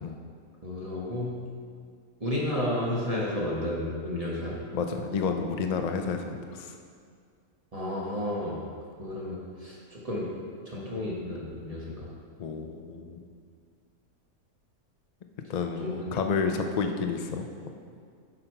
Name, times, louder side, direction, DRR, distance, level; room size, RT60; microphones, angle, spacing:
voice 1, 0.6-1.4 2.2-4.5 7.7-8.6 9.0-10.3 10.7-12.1 15.8-16.2, left 1 dB, 25° right, -6 dB, 1.2 m, -32 dB
voice 2, 4.7-6.8 12.4-13.2 15.5-17.7, left 5 dB, 85° left, 5 dB, 0.3 m, -30 dB
7.6 x 5.9 x 4.5 m, 2.1 s
omnidirectional pair, 1.5 m